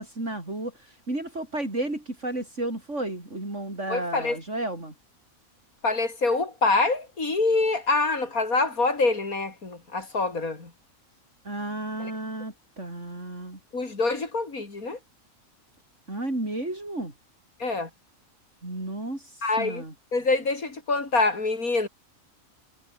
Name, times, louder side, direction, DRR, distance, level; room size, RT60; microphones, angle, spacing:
voice 1, 0.0-4.9 10.0-10.1 11.4-13.6 16.1-17.1 18.6-19.9, right 1 dB, 55° right, 6.7 m, -33 dB
voice 2, 3.9-4.4 5.8-10.7 12.0-12.1 13.7-15.0 17.6-17.9 19.4-19.8 20.1-21.9, left 3 dB, 80° left, 4.3 m, -25 dB
omnidirectional pair, 1.5 m